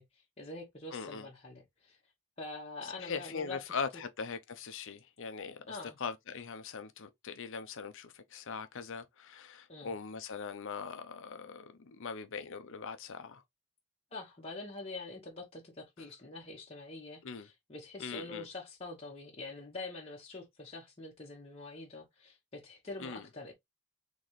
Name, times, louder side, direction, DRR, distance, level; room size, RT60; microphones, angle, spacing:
voice 1, 0.0-2.0 2.4-3.6 5.7-6.0 9.7-9.9 14.1-23.5, left 3 dB, 30° left, 1.1 m, -45 dB
voice 2, 0.9-1.3 2.8-13.4 17.2-17.5 18.0-18.5 23.0-23.3, left 5 dB, 60° left, 0.6 m, -41 dB
4.1 x 3.1 x 3.1 m
head